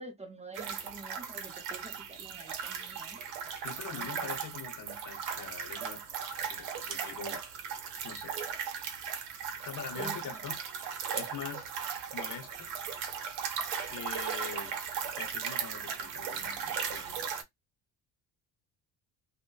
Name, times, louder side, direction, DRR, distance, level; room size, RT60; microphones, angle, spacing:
voice 1, 0.0-3.2 3.7-4.5 10.0-10.4, right 2 dB, 15° right, 0.6 m, -48 dB
sound 1, 0.6-17.4, right 7 dB, 90° right, 0.7 m, -37 dB
voice 2, 3.6-6.0 6.5-7.4 8.0-8.3 9.6-10.6 11.1-11.7 12.1-12.7 13.9-14.8 15.1-17.0, left 7 dB, 50° left, 0.8 m, -43 dB
2.7 x 2.1 x 2.2 m
supercardioid pair, 70°, 40 cm